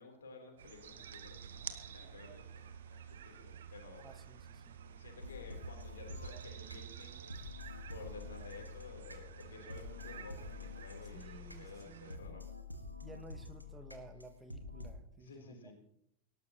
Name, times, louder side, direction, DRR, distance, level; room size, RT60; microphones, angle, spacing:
voice 1, 0.0-4.1 4.8-7.2 7.9-12.4 15.2-15.7, left 4 dB, 65° left, 3 dB, 3.7 m, -53 dB
sound 1, 0.6-12.2, right 8 dB, 65° right, 1.3 m, -51 dB
voice 2, 4.0-4.8 11.1-12.4 13.0-15.7, right 3 dB, 15° right, 8 dB, 1.6 m, -55 dB
sound 2, 5.2-14.9, left 3 dB, 90° right, 1.6 m, -48 dB
19.0 x 18.5 x 3.1 m, 0.78 s
figure-of-eight pair, 90°, 0 cm